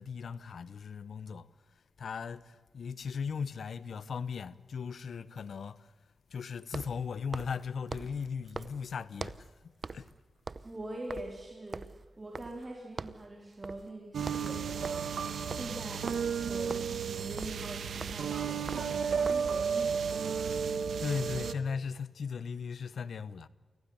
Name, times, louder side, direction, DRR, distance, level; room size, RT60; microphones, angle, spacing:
voice 1, 0.0-1.5 2.0-5.9 6.3-10.1 21.0-23.5, left 6 dB, 75° left, 0.8 m, -37 dB
sound 1, 3.3-3.4 6.6-9.5 9.8-10.1 10.4-12.7 13.0-13.3 13.6-13.9 14.2-19.6, right 4 dB, 45° right, 0.8 m, -43 dB
voice 2, 10.6-15.1 15.5-20.4, right 1 dB, 30° right, 4.1 m, -43 dB
sound 2, 14.1-21.5, right 6 dB, 80° right, 1.3 m, -33 dB
25.0 x 16.0 x 9.8 m
cardioid pair, 55°, 0 cm